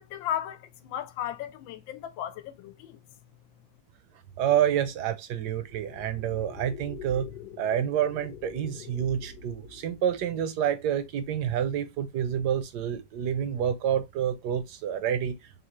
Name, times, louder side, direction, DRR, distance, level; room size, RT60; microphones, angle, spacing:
voice 1, 0.0-3.0, left 11 dB, 85° left, 1.4 m, -35 dB
voice 2, 4.4-7.3 7.6-15.4, right 9 dB, 70° right, 1.1 m, -28 dB
sound 1, 5.6-10.5, left 6 dB, 70° left, 1.1 m, -45 dB
4.0 x 2.6 x 2.9 m
omnidirectional pair, 2.0 m